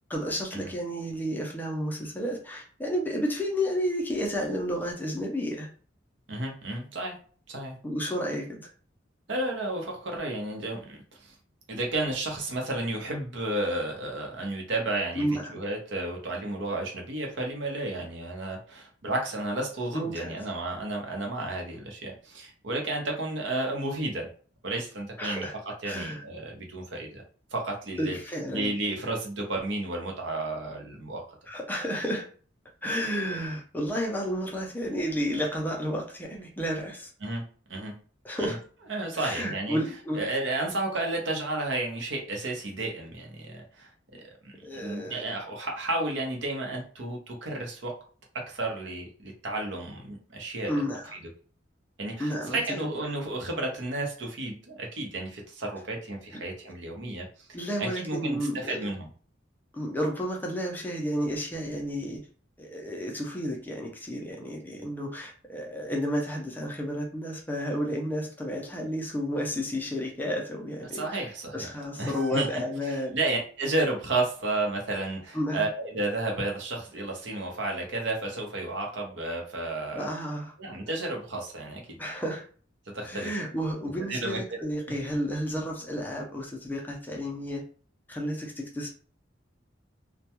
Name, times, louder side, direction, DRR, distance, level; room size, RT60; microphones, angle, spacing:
voice 1, 0.1-5.7 7.8-8.7 15.1-15.6 19.9-20.4 25.2-25.5 25.8-26.2 28.0-28.7 31.5-32.3 32.8-37.1 38.2-38.6 39.1-40.2 44.6-45.3 50.6-51.1 52.2-52.8 57.5-58.9 59.7-62.2 62.6-73.2 75.3-75.7 79.9-80.5 82.0-82.4 83.0-87.6 88.1-88.9, equal, 10° left, 1 dB, 0.4 m, -31 dB
voice 2, 6.3-7.2 7.5-7.8 9.3-11.3 11.7-24.3 24.6-25.4 25.8-27.2 27.5-28.2 28.5-31.2 37.2-37.4 37.7-37.9 38.4-38.6 38.9-39.8 40.1-43.9 44.4-47.9 48.3-50.8 52.0-59.1 70.9-71.7 72.0-72.6 72.9-80.1 80.6-82.0 82.9-83.3 83.8-84.4, right 2 dB, 75° right, 1 dB, 0.7 m, -32 dB
2.2 x 2.2 x 2.8 m, 0.42 s
head